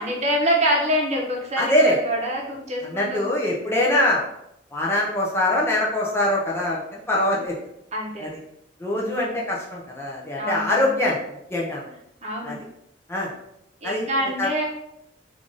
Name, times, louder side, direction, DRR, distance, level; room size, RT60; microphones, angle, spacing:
voice 1, 0.0-3.3 7.9-8.3 9.0-9.4 10.4-10.9 12.2-12.5 13.8-14.7, equal, 35° right, -1 dB, 0.8 m, -26 dB
voice 2, 1.6-2.0 2.9-4.2 4.7-7.5 8.2-8.3 8.8-11.2 11.5-11.8 12.4-12.5 13.1-13.3 13.8-14.1 14.4-14.5, left 1 dB, 15° left, -4 dB, 0.4 m, -23 dB
3.3 x 2.5 x 3.7 m, 0.81 s
head